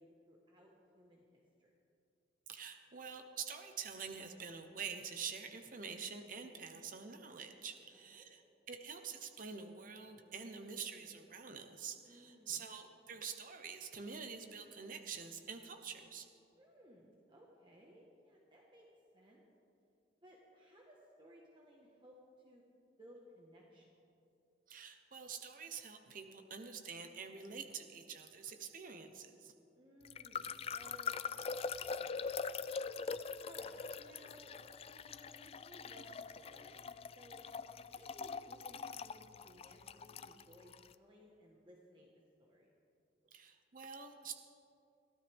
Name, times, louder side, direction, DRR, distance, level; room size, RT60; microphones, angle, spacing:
voice 1, 0.0-1.7 7.7-8.3 12.0-12.6 16.6-18.9 19.1-19.4 20.2-22.6 23.0-23.9 29.7-32.6 33.4-34.5 34.9-36.8 37.1-37.4 37.7-42.1 42.4-42.7, equal, 25° right, -2 dB, 1.4 m, -61 dB
voice 2, 2.5-8.4 8.7-16.3 24.7-29.5 43.3-44.4, right 6 dB, 45° right, 6 dB, 1.0 m, -47 dB
sound 1, 30.0-40.9, left 5 dB, 30° left, 0.3 m, -43 dB
23.0 x 15.0 x 3.6 m, 2.6 s
head